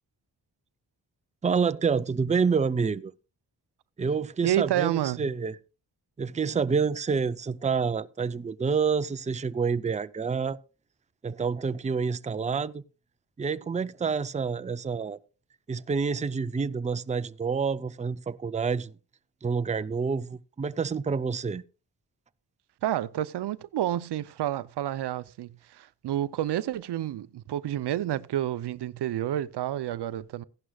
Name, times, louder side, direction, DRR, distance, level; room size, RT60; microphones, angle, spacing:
voice 1, 1.4-3.1 4.0-5.6 6.2-10.6 11.2-12.8 13.4-15.2 15.7-18.9 19.4-21.6, right 5 dB, 20° right, 0.5 m, -28 dB
voice 2, 4.4-5.3 22.8-30.4, right 12 dB, 75° right, 0.6 m, -29 dB
15.5 x 11.0 x 2.3 m
cardioid pair, 70°, 40 cm